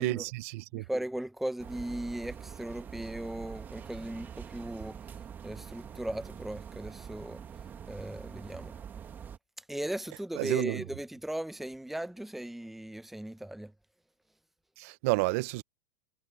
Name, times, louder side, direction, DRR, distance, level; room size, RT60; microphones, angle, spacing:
voice 1, 0.0-0.9 10.3-10.8 14.8-15.6, right 23 dB, 50° right, 0.7 m, -30 dB
voice 2, 0.7-5.0 5.4-7.4 7.9-8.7 9.7-13.7, right 1 dB, ahead, 0.7 m, -37 dB
sound 1, 1.6-9.4, right 8 dB, 20° right, 1.7 m, -45 dB
supercardioid pair, 150°, 10 cm